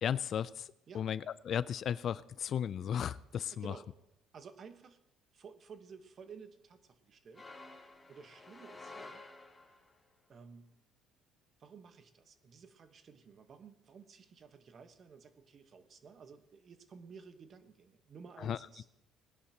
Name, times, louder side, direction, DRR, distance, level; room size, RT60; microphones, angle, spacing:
voice 1, 0.0-3.7 18.4-18.6, left 9 dB, 50° left, 18 dB, 0.4 m, -35 dB
voice 2, 3.5-3.9 4.3-5.0 5.3-9.2 10.3-10.7 11.6-18.8, right 5 dB, 40° right, 9 dB, 1.2 m, -54 dB
sound 1, 7.3-10.0, left 2 dB, 15° left, 2.3 m, -51 dB
19.5 x 11.0 x 2.9 m, 0.84 s
cardioid pair, 115°, 0 cm